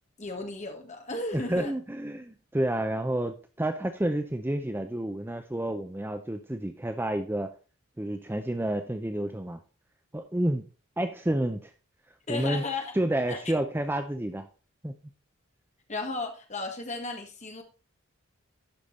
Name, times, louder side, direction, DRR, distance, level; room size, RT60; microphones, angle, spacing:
voice 1, 0.2-1.7 12.3-12.9 13.3-13.4 15.9-17.6, left 3 dB, 35° left, 4 dB, 1.6 m, -34 dB
voice 2, 1.3-7.5 8.0-9.6 10.1-10.7 11.0-11.7 12.3-12.6 12.9-14.5 14.8-14.9, right 1 dB, 10° right, 7 dB, 0.5 m, -30 dB
11.5 x 5.1 x 4.1 m, 0.36 s
head